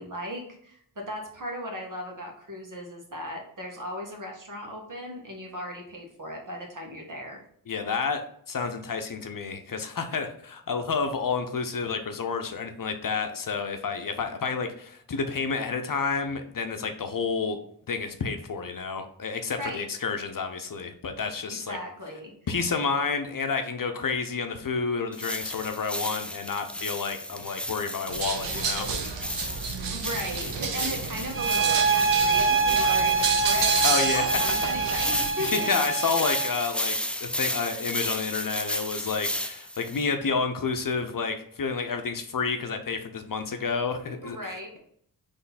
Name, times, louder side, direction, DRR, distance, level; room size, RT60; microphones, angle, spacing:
voice 1, 0.0-7.4 19.6-19.9 21.6-22.3 29.9-35.7 44.2-44.8, equal, 45° right, 1 dB, 1.7 m, -37 dB
voice 2, 7.7-17.6 17.9-21.8 22.5-29.0 33.8-34.3 34.8-35.1 35.4-44.5, left 5 dB, 50° left, 6 dB, 0.7 m, -30 dB
sound 1, 25.1-40.0, left 1 dB, 5° left, 0.5 m, -33 dB
sound 2, 28.1-35.3, right 5 dB, 80° right, 0.8 m, -30 dB
sound 3, 31.3-36.6, right 5 dB, 30° right, 0.7 m, -25 dB
3.9 x 3.3 x 4.1 m, 0.66 s
cardioid pair, 40°, 42 cm